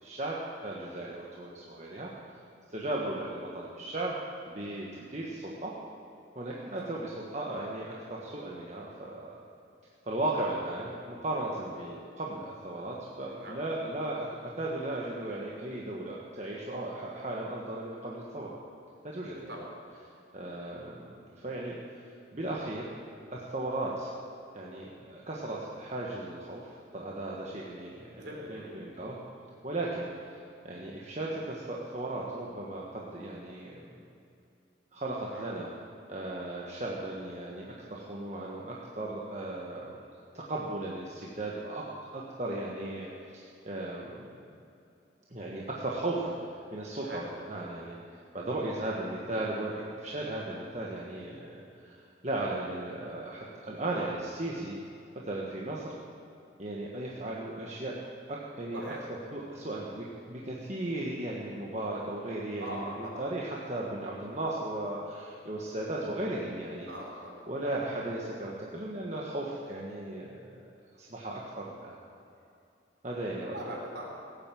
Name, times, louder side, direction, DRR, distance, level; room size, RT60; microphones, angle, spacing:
voice 1, 0.0-2.1 2.7-4.2 4.5-5.8 6.3-9.3 10.0-18.5 19.0-19.4 20.3-21.8 22.3-22.9 23.3-24.1 24.5-29.2 29.6-30.4 30.6-33.8 34.9-35.7 36.1-40.0 40.3-41.9 42.1-44.4 45.3-46.4 46.7-48.0 48.3-54.8 55.1-55.9 56.6-58.0 58.3-58.8 59.3-66.9 67.5-70.6 71.0-71.9 73.0-73.6, right 2 dB, 35° right, -4 dB, 1.4 m, -36 dB
voice 2, 13.3-13.6 19.3-19.7 28.2-28.7 35.2-35.5 47.0-47.2 58.7-59.0 62.6-63.2 66.9-67.4 73.5-74.0, equal, 60° right, -2 dB, 3.9 m, -41 dB
17.0 x 9.1 x 7.6 m, 2.6 s
head